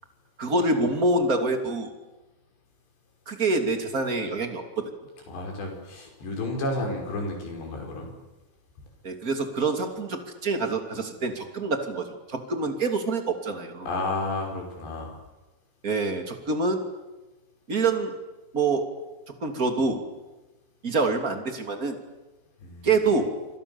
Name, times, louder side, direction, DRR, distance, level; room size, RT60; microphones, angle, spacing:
voice 1, 0.4-1.9 3.3-4.9 9.0-13.9 15.8-16.8 17.7-18.1 18.5-18.9 19.4-20.0 20.8-22.0 22.8-23.4, right 3 dB, 25° right, 5 dB, 2.1 m, -26 dB
voice 2, 5.3-8.1 13.9-15.2 22.6-22.9, left 2 dB, 60° left, 2 dB, 7.4 m, -31 dB
28.5 x 26.5 x 7.1 m, 1.1 s
omnidirectional pair, 5.6 m